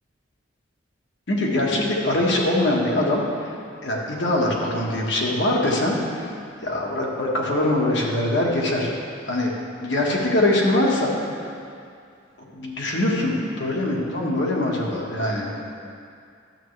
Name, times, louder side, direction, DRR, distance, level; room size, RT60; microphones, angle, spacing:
voice 1, 1.3-3.6 3.8-6.3 6.6-8.9 9.3-9.5 9.8-11.1 12.4-15.7, left 1 dB, 60° left, -3 dB, 1.4 m, -23 dB
12.0 x 7.7 x 3.3 m, 2.3 s
head